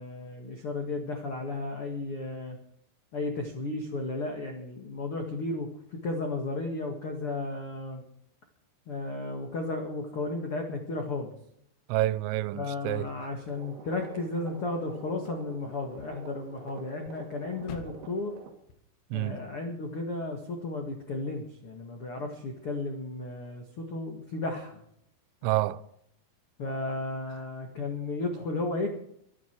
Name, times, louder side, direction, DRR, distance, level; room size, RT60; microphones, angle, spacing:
voice 1, 0.0-2.6 3.1-8.0 8.9-11.4 12.5-18.4 19.1-24.8 26.6-28.9, left 2 dB, 85° left, 1.2 m, -34 dB
voice 2, 11.9-13.1 19.1-19.4 25.4-25.8, right 16 dB, 85° right, 3.4 m, -28 dB
sound 1, 12.9-18.8, left 5 dB, 65° left, 3.7 m, -52 dB
sound 2, 13.5-18.5, right 4 dB, 60° right, 3.9 m, -47 dB
24.0 x 10.0 x 4.7 m
omnidirectional pair, 5.9 m